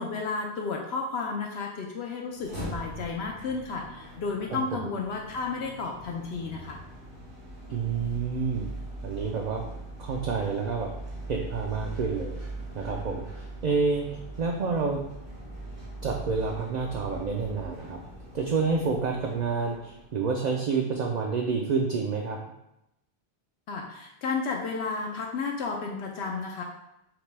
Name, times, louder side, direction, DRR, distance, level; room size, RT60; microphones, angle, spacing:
voice 1, 0.0-6.8 23.7-26.6, left 4 dB, 80° left, 0 dB, 0.8 m, -32 dB
sound 1, 2.3-20.4, right 2 dB, 85° right, 1.5 m, -41 dB
voice 2, 4.5-4.9 7.7-8.7 9.0-9.6 10.0-10.9 11.3-12.4 12.7-15.0 16.0-18.0 18.3-22.4, right 4 dB, 55° right, 0 dB, 0.5 m, -29 dB
5.9 x 2.2 x 3.3 m, 0.85 s
omnidirectional pair, 1.1 m